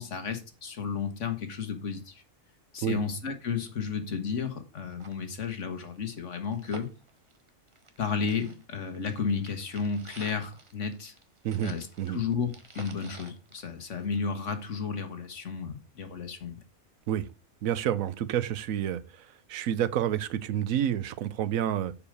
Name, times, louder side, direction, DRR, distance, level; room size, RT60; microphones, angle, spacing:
voice 1, 0.0-2.2 2.7-6.9 8.0-11.1 11.6-16.6, left 6 dB, 65° left, 1.6 m, -33 dB
sound 1, 4.1-4.2 4.5-4.6 4.9-8.0 8.3-14.4 14.7-14.8, right 3 dB, 25° right, 1.0 m, -51 dB
voice 2, 11.4-12.2 17.1-17.3 17.6-19.0 19.5-21.9, right 10 dB, 85° right, 1.1 m, -29 dB
6.9 x 5.0 x 6.6 m
omnidirectional pair, 1.4 m